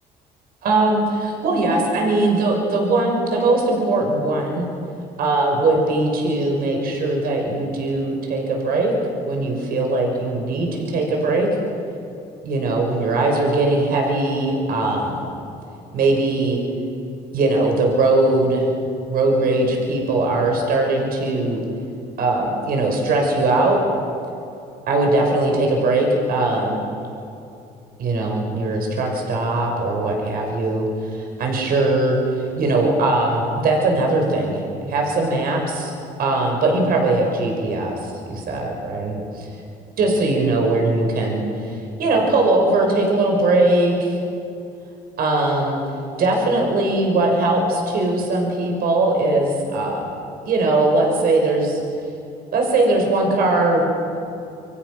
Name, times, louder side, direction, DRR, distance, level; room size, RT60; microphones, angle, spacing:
voice 1, 0.6-4.6 5.2-8.9 9.2-11.5 12.4-15.3 15.9-16.6 17.3-18.7 19.1-21.6 22.2-23.8 24.9-26.8 28.0-35.9 36.2-39.5 40.0-44.2 45.2-45.8 46.2-50.1 50.5-51.8 52.5-53.8, right 2 dB, 60° right, 1 dB, 6.1 m, -20 dB
29.0 x 25.0 x 6.4 m, 2.7 s
cardioid pair, 110°, 17 cm